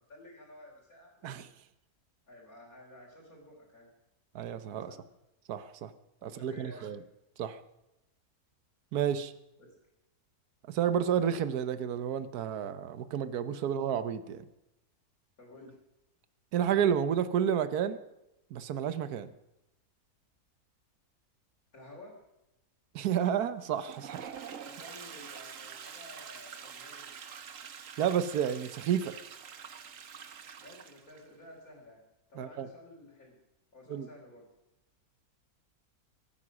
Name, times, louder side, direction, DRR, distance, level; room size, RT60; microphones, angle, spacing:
voice 1, 0.0-1.3 2.3-3.9 4.9-5.0 6.2-6.9 9.6-9.7 13.6-13.7 15.4-15.8 21.7-22.1 24.6-27.1 30.6-32.0 32.3-33.4 33.7-34.5, left 1 dB, 70° left, -5 dB, 4.2 m, -52 dB
voice 2, 4.3-4.9 5.5-5.9 6.2-7.0 7.4-7.6 8.9-9.3 10.7-14.4 16.5-18.0 18.5-19.3 22.9-24.3 28.0-29.1 32.4-32.7 33.9-34.1, right 8 dB, 80° right, 12 dB, 1.4 m, -30 dB
Toilet flush, 23.6-31.3, right 7 dB, 60° right, 1.3 m, -46 dB
24.0 x 9.7 x 6.2 m, 0.93 s
omnidirectional pair, 1.6 m